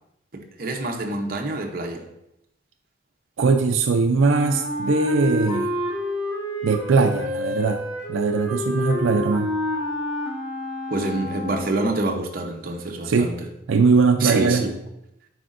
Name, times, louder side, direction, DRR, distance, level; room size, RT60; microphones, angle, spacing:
voice 1, 0.3-2.0 10.9-13.4 14.2-14.7, right 2 dB, 50° right, 2 dB, 0.7 m, -26 dB
voice 2, 3.4-5.7 6.6-7.8 8.1-9.5 13.0-13.3 13.7-14.7, right 4 dB, 85° right, 5 dB, 0.4 m, -20 dB
Wind instrument woodwind instrument, 4.2-11.9, left 1 dB, 10° right, 1.4 m, -28 dB
7.7 x 5.0 x 2.5 m, 0.83 s
head